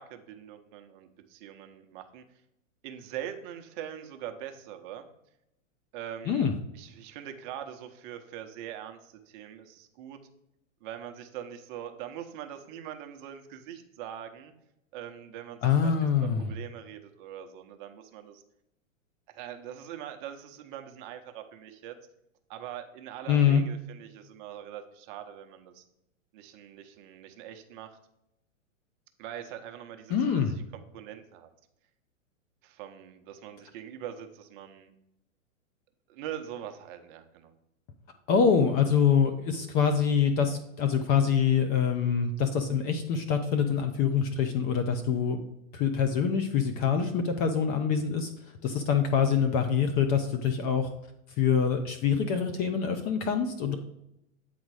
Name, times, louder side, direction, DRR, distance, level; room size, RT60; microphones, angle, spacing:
voice 1, 0.0-2.2 2.8-5.1 5.9-6.5 6.7-10.2 10.8-14.5 14.9-15.9 16.2-18.4 19.3-21.9 22.5-25.8 26.3-28.0 29.2-31.5 32.6-34.9 36.1-37.5, right 10 dB, 40° right, 6 dB, 0.9 m, -42 dB
voice 2, 15.6-16.5 23.3-23.6 30.1-30.6 38.3-45.4 45.7-48.3 48.6-50.9 51.4-53.8, left 7 dB, 25° left, 7 dB, 0.5 m, -25 dB
8.6 x 4.0 x 4.7 m, 0.82 s
hypercardioid pair, 135°, 39 cm